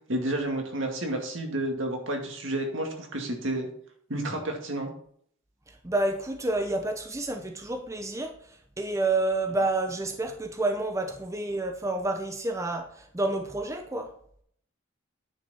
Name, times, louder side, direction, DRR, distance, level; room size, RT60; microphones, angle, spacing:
voice 1, 0.1-3.7 4.1-4.9, right 1 dB, 70° right, 2 dB, 2.2 m, -30 dB
voice 2, 5.7-14.1, right 2 dB, 15° right, 5 dB, 0.8 m, -29 dB
9.9 x 6.0 x 4.3 m, 0.63 s
head